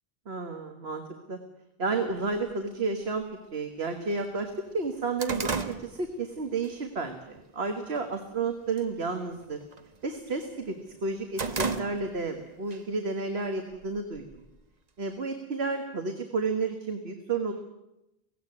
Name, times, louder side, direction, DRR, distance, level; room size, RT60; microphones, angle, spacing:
voice 1, 0.3-1.0 1.3-1.4 1.8-3.2 3.5-9.6 10.0-10.7 11.0-14.4 15.0-17.5, right 3 dB, 80° right, 5 dB, 1.8 m, -31 dB
sound 1, 2.3-2.4 3.3-3.4 3.9-4.0 4.3-6.7 7.1-7.4 7.9-8.4 8.6-9.0 9.3-10.5 10.9-12.4 12.7-12.8 13.7-14.6, right 4 dB, 40° right, 1.2 m, -34 dB
17.5 x 16.0 x 9.8 m, 0.88 s
omnidirectional pair, 1.0 m